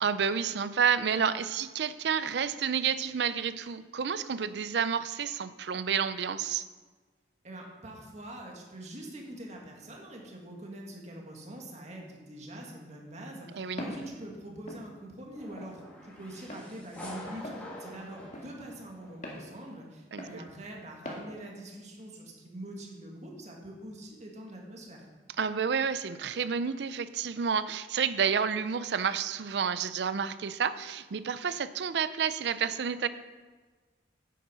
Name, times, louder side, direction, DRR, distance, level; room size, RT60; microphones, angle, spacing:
voice 1, 0.0-6.6 13.5-13.8 20.1-20.2 25.4-33.1, right 7 dB, 70° right, 14 dB, 0.5 m, -30 dB
voice 2, 7.4-25.1, right 1 dB, 40° right, 0 dB, 2.0 m, -44 dB
Walk footsteps, 13.8-14.1 14.7-14.8 15.6-15.8 16.5-16.7 17.4-17.6 18.3-18.5 19.2-19.4 20.2-20.4 21.1-21.2, left 1 dB, 45° left, 1.9 m, -40 dB
sound 1, 15.3-19.4, left 1 dB, 10° left, 2.9 m, -46 dB
9.4 x 8.5 x 5.6 m, 1.4 s
head